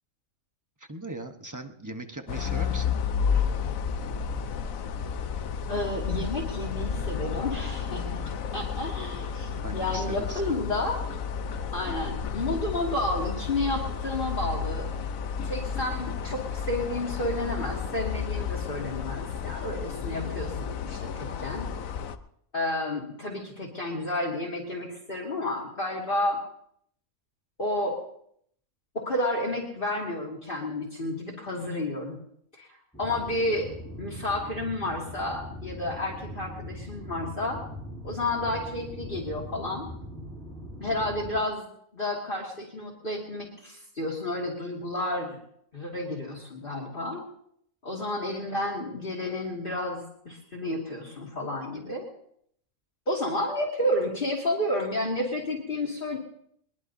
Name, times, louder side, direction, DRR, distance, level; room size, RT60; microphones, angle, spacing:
voice 1, 0.9-3.0 9.6-10.4, right 2 dB, 15° right, 6 dB, 1.0 m, -39 dB
sound 1, 2.3-22.2, left 6 dB, 90° left, 1.2 m, -32 dB
voice 2, 5.7-8.2 8.5-11.0 11.7-14.9 15.4-21.7 22.5-26.4 27.6-28.0 28.9-32.2 32.5-33.7 34.0-37.6 38.0-39.9 40.8-41.7 41.9-45.4 45.7-47.2 47.8-52.1 53.1-56.2, left 1 dB, 40° left, -3 dB, 2.4 m, -31 dB
sound 2, 32.9-41.4, left 1 dB, 5° left, 4.1 m, -41 dB
21.5 x 21.5 x 2.7 m, 0.69 s
omnidirectional pair, 1.4 m